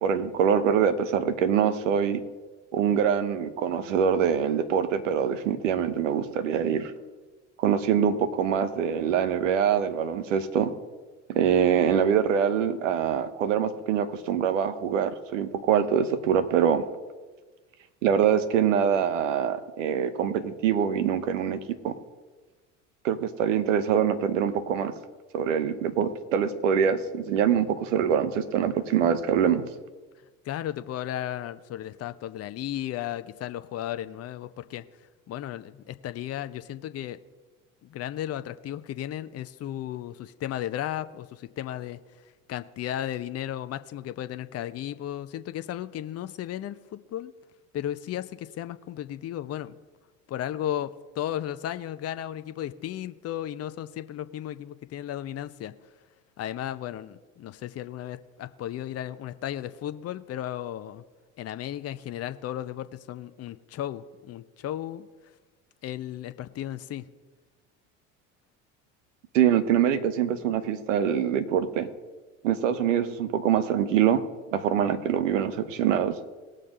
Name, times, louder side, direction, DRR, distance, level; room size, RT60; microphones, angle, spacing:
voice 1, 0.0-2.2 2.7-6.9 7.6-10.7 11.3-16.8 18.0-21.9 23.0-24.9 25.3-29.7 69.3-71.9 72.4-74.2 74.5-76.2, right 8 dB, 80° right, 10 dB, 1.0 m, -24 dB
voice 2, 30.4-34.8 35.3-37.2 37.8-42.0 42.5-47.3 47.7-49.8 50.3-55.7 56.4-61.0 61.4-65.1 65.8-67.0, left 11 dB, 40° left, 12 dB, 0.8 m, -34 dB
19.5 x 6.6 x 3.8 m, 1.3 s
hypercardioid pair, 65°, 38 cm